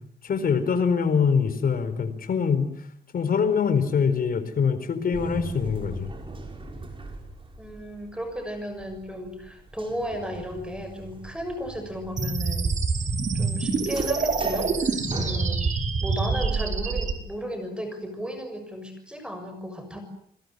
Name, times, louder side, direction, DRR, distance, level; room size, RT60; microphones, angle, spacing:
voice 1, 0.2-2.7 3.1-6.1, left 6 dB, 55° left, 11 dB, 4.4 m, -24 dB
sound 1, 5.1-17.5, right 2 dB, 30° right, 6.3 m, -40 dB
voice 2, 7.6-12.7 13.3-15.6 16.0-20.0, equal, 5° right, 7 dB, 6.7 m, -34 dB
sound 2, 12.2-17.1, right 4 dB, 45° right, 4.8 m, -26 dB
29.5 x 21.5 x 8.1 m, 0.66 s
wide cardioid pair, 135°, 18 cm